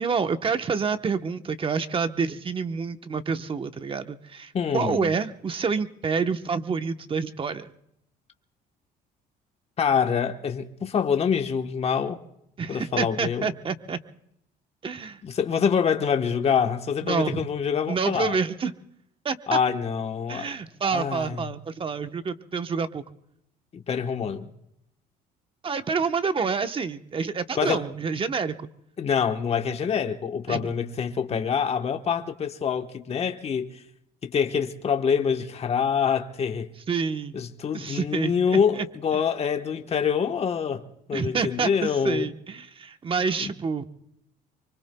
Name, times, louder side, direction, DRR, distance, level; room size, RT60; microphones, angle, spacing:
voice 1, 0.0-7.7 12.6-14.0 14.8-15.2 17.0-17.5 17.9-18.7 19.2-19.6 20.3-23.0 25.6-28.7 30.5-30.7 36.9-37.4 37.7-38.9 41.1-43.9, right 5 dB, 30° right, 1.0 m, -28 dB
voice 2, 4.5-5.1 9.8-12.2 12.7-13.5 15.2-18.4 19.5-20.5 20.9-21.5 23.7-24.5 27.5-27.8 29.0-33.8 34.2-36.7 37.3-42.3 43.4-43.5, left 7 dB, 35° left, 1.1 m, -26 dB
26.0 x 24.0 x 2.3 m
cardioid pair, 110°, 17 cm